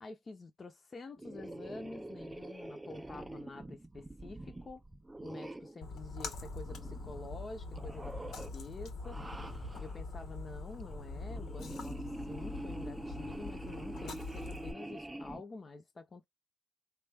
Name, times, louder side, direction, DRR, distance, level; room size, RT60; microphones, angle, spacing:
voice 1, 0.0-4.8 5.2-9.2 9.8-16.2, left 3 dB, 35° left, 0.6 m, -48 dB
sound 1, 1.2-5.8 6.3-7.4 7.7-8.5 9.0-10.0 10.7-15.4, right 1 dB, 10° right, 0.4 m, -45 dB
Splash splatter, 5.8-14.7, left 3 dB, 70° left, 0.9 m, -44 dB
3.6 x 2.3 x 3.4 m
cardioid pair, 90°, 0 cm